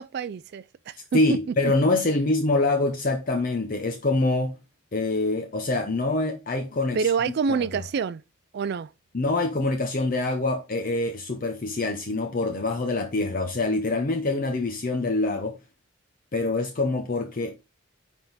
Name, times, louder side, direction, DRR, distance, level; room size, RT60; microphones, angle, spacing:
voice 1, 0.0-1.4 6.9-8.2 8.5-8.9, right 6 dB, 50° right, 0.3 m, -27 dB
voice 2, 1.1-4.5 4.9-7.1 7.5-7.7 9.1-15.6 16.3-17.6, left 2 dB, 40° left, 0.7 m, -25 dB
10.5 x 3.6 x 4.0 m
head